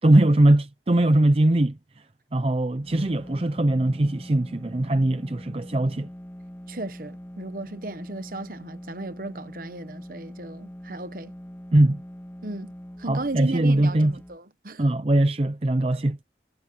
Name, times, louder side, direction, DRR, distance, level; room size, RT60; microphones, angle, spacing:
voice 1, 0.0-1.8 2.3-6.1 11.7-12.0 13.1-14.1 14.8-16.2, right 1 dB, 35° right, 0.6 m, -21 dB
sound 1, 2.7-14.4, equal, 10° left, 2.5 m, -42 dB
voice 2, 6.7-11.3 12.4-12.7 13.0-14.8, right 2 dB, 50° right, 1.1 m, -35 dB
head